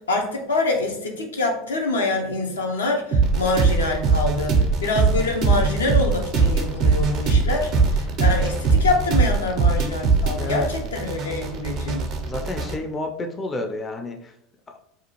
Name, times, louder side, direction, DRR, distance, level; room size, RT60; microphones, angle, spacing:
voice 1, 0.1-12.1, left 2 dB, 85° left, 1 dB, 0.5 m, -25 dB
sound 1, 3.1-12.7, right 4 dB, 50° right, 0.5 m, -21 dB
voice 2, 10.4-10.7 12.2-14.3, left 2 dB, 25° left, 4 dB, 0.4 m, -30 dB
2.5 x 2.3 x 2.9 m, 0.74 s
hypercardioid pair, 80°, 0 cm